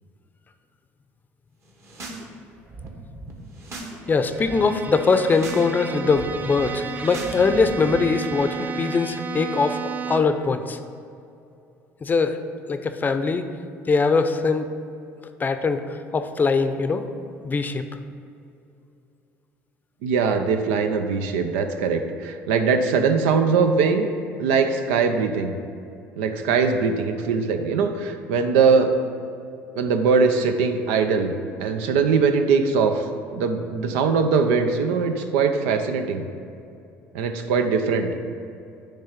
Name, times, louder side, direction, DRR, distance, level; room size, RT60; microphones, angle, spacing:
sound 1, 1.7-2.2 2.5-4.0 4.2-4.6 5.1-5.7 5.9-8.0, right 2 dB, 45° right, 1.4 m, -39 dB
Bowed string instrument, 4.0-10.5, right 5 dB, 25° right, 0.4 m, -33 dB
voice 1, 4.1-10.8 12.0-12.4 12.7-13.4 13.9-14.7 15.4-17.0 17.4-17.8, left 4 dB, 30° left, 9 dB, 0.6 m, -22 dB
voice 2, 20.0-24.1 24.4-25.5 26.2-28.9 29.8-31.3 31.6-33.0 33.3-36.2 37.1-38.1, right 5 dB, 90° right, 6 dB, 0.6 m, -21 dB
10.0 x 3.4 x 5.8 m, 2.6 s
supercardioid pair, 90°, 6 cm